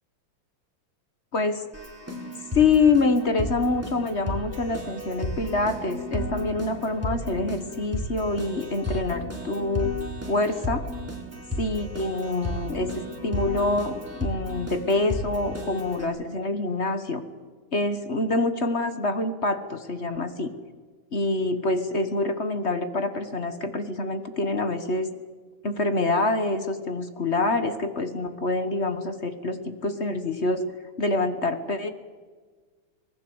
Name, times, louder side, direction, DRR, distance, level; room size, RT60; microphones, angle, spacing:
voice 1, 1.3-1.6 2.5-9.9 10.3-10.9 11.6-17.2 17.7-20.5 21.1-25.1 25.6-30.7 31.0-31.9, left 3 dB, 35° left, 9 dB, 1.4 m, -26 dB
Keyboard (musical), 1.7-16.1, left 1 dB, 5° right, 4.1 m, -34 dB
25.5 x 19.5 x 8.0 m, 1.4 s
omnidirectional pair, 2.4 m